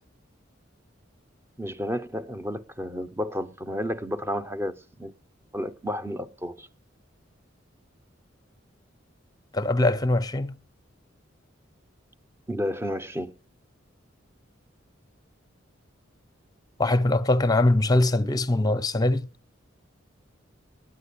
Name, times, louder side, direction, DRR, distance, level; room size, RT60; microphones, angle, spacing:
voice 1, 1.6-5.1 5.5-6.7 12.5-13.4, equal, 15° right, 0.7 m, -31 dB
voice 2, 9.5-10.6 16.8-19.3, left 2 dB, 20° left, 0.7 m, -22 dB
9.3 x 9.1 x 8.3 m
head